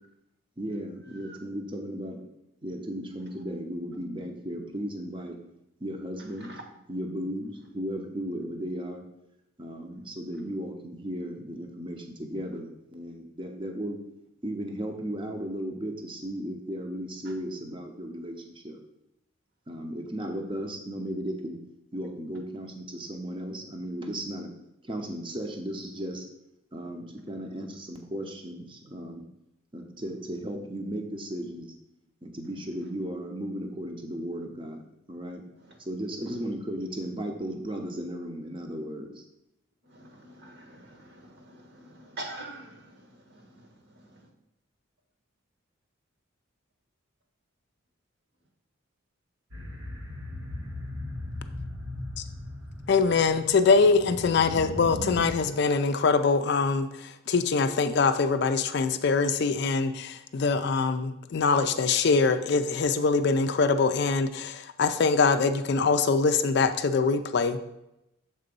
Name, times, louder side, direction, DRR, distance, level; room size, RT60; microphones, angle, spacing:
voice 1, 0.6-2.3 2.6-5.4 5.8-6.5 6.9-9.0 9.6-14.0 14.4-18.8 19.7-21.6 21.9-24.5 24.8-26.2 26.7-29.3 29.7-31.7 32.2-34.8 35.1-35.4 35.8-39.2, equal, 25° right, 3 dB, 0.7 m, -35 dB
voice 2, 39.9-44.2, right 2 dB, 50° right, 2 dB, 1.2 m, -45 dB
sound 1, 49.5-55.3, left 1 dB, 90° right, 1.4 m, -38 dB
voice 3, 52.9-67.6, left 4 dB, 50° left, 9 dB, 0.4 m, -23 dB
6.8 x 3.9 x 5.3 m, 0.86 s
head